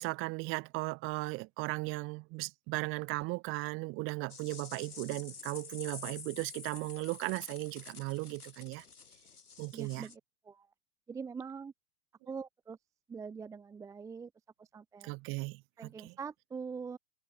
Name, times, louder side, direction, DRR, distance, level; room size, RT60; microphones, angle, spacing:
voice 1, 0.0-8.8 9.6-10.1 15.0-15.6 16.0-16.1, right 25 dB, 30° right, 1.1 m, -36 dB
sound 1, 4.3-10.2, left 5 dB, 85° left, 1.9 m, -49 dB
voice 2, 9.7-10.7 11.1-11.7 12.3-12.8 13.1-14.3 14.6-15.1 15.8-17.0, right 5 dB, 5° right, 0.7 m, -43 dB
figure-of-eight pair, 110°, 44 cm